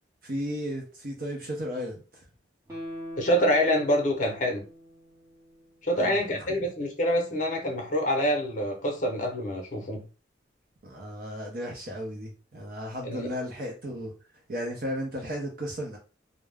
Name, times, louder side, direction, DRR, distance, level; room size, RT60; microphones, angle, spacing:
voice 1, 0.2-2.0 5.9-6.6 10.8-14.1 14.5-16.0, equal, 45° right, 0.6 m, -34 dB
Guitar, 2.7-6.0 6.3-6.4, equal, 15° right, 0.7 m, -43 dB
voice 2, 3.2-4.6 5.8-10.0 13.0-13.3, equal, 40° left, 0.7 m, -26 dB
2.3 x 2.0 x 3.3 m
head